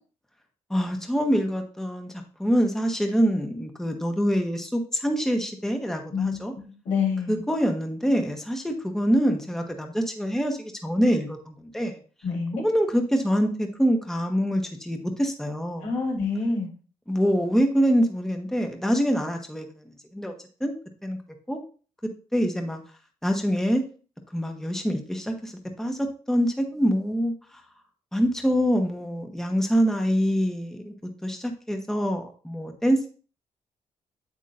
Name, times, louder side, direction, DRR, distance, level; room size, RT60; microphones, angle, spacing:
voice 1, 0.7-6.5 7.3-12.0 12.6-15.9 17.1-19.8 20.1-20.3 20.6-20.7 21.0-21.2 21.5-21.6 22.3-22.8 23.2-23.8 24.3-27.6 28.1-30.9 31.2-33.1, equal, 5° left, 4 dB, 1.1 m, -25 dB
voice 2, 6.8-7.4 12.2-12.6 15.8-16.7, left 5 dB, 85° left, -1 dB, 3.4 m, -26 dB
8.3 x 8.2 x 2.6 m, 0.38 s
cardioid pair, 120°, 11 cm